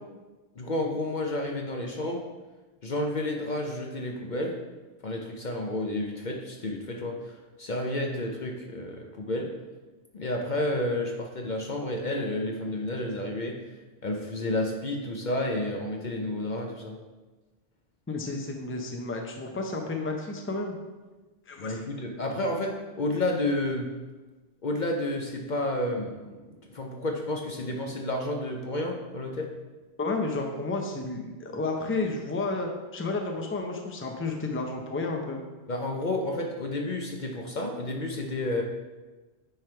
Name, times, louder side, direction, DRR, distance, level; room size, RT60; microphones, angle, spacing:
voice 1, 0.6-2.2 2.8-4.6 5.0-9.5 10.1-13.6 14.0-17.0 21.6-23.9 24.6-26.4 26.7-29.5 35.7-38.6, left 1 dB, 50° left, 1 dB, 0.7 m, -31 dB
voice 2, 18.1-20.8 21.5-21.8 30.0-35.4, left 3 dB, 15° left, 2 dB, 0.6 m, -31 dB
9.3 x 3.4 x 4.4 m, 1.2 s
omnidirectional pair, 1.1 m